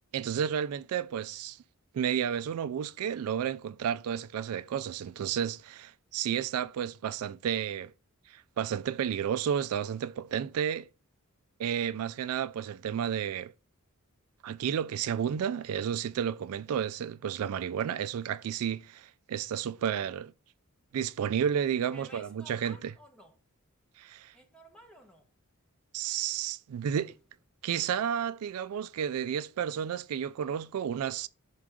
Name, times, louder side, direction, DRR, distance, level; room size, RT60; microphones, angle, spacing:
voice 1, 0.1-1.6 1.9-7.9 8.3-10.9 11.6-13.5 14.4-20.3 20.9-22.8 24.0-24.3 25.9-27.1 27.6-31.3, right 8 dB, 75° right, 0.3 m, -32 dB
voice 2, 21.9-23.4 24.3-25.3, right 1 dB, 5° left, 1.1 m, -53 dB
6.2 x 4.6 x 3.6 m
head